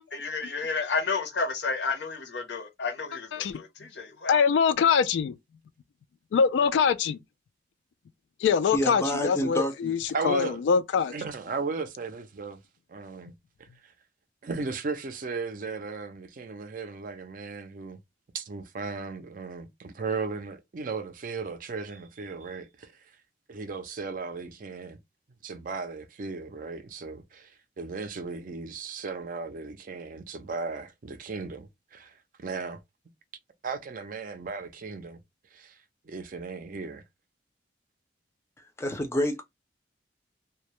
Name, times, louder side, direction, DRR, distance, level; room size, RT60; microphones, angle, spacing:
voice 1, 0.1-4.4, left 4 dB, 70° left, 0.7 m, -31 dB
voice 2, 3.3-3.6 4.3-5.3 6.3-7.2 8.4-11.1, left 6 dB, 85° left, 0.3 m, -24 dB
voice 3, 8.7-9.9 38.8-39.4, equal, 15° left, 0.4 m, -28 dB
voice 4, 10.1-10.6 11.1-12.6 12.9-13.3 13.6-13.9 14.4-18.0 18.3-23.2 23.5-25.0 25.4-32.8 33.6-35.2 35.5-35.8 36.0-37.0, right 4 dB, 50° right, 0.4 m, -36 dB
2.2 x 2.0 x 2.9 m
head